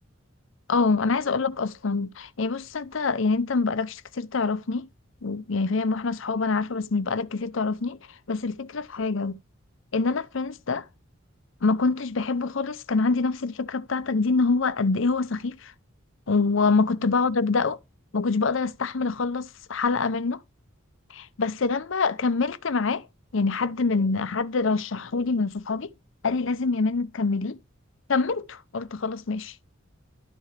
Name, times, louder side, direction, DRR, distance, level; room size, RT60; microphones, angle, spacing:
voice 1, 0.7-4.9 5.2-9.4 9.9-10.8 11.6-15.7 16.3-17.8 18.1-20.4 21.1-23.1 23.3-25.9 26.2-27.6 28.1-29.6, left 4 dB, 65° left, 0.7 m, -25 dB
12.0 x 5.7 x 3.4 m
head